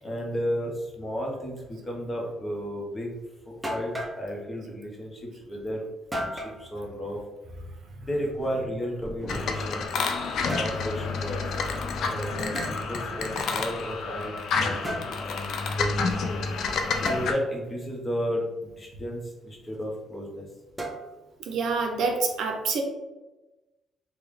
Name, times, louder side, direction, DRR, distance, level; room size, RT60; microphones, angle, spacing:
voice 1, 0.0-3.1 3.4-5.9 6.1-7.2 8.0-9.8 10.1-11.6 12.1-16.1 17.0-20.5, equal, 25° left, -1 dB, 0.9 m, -33 dB
sound 1, 3.1-3.2 3.6-4.2 6.1-6.6 8.3-9.7 10.3-10.8 12.5-12.8 14.8-15.2 17.1-17.3 20.8-21.3, equal, 10° right, 0.6 m, -34 dB
sound 2, 9.3-17.3, left 4 dB, 70° left, 0.4 m, -29 dB
voice 2, 21.5-22.8, right 4 dB, 75° right, 3 dB, 0.6 m, -26 dB
3.3 x 2.2 x 3.6 m, 1.1 s
cardioid pair, 90°, 0 cm